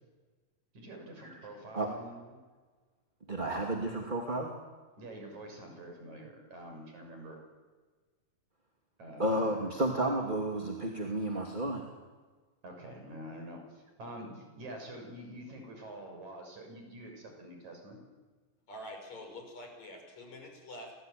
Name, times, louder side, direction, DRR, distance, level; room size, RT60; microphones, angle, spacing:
voice 1, 0.8-2.4 5.0-7.4 9.0-9.7 12.6-18.0, right 1 dB, 55° right, 3 dB, 7.9 m, -46 dB
voice 2, 3.3-4.5 9.2-11.8, right 1 dB, 15° right, 1 dB, 2.1 m, -32 dB
voice 3, 18.7-20.9, left 1 dB, 50° left, 3 dB, 7.3 m, -46 dB
29.5 x 21.5 x 9.4 m, 1.4 s
omnidirectional pair, 4.0 m